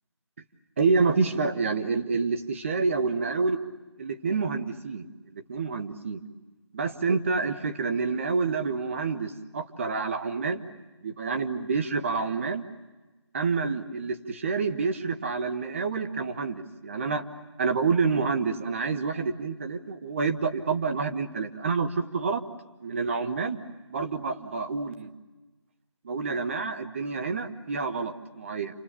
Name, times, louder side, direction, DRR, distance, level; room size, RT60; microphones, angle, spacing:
voice 1, 0.8-3.6 4.0-6.2 6.7-10.6 11.0-12.6 13.3-17.2 17.6-22.4 22.8-23.6 23.9-25.1 26.0-28.8, right 4 dB, 25° right, 7 dB, 1.4 m, -28 dB
29.0 x 27.0 x 7.1 m, 1.2 s
figure-of-eight pair, 165°, 15 cm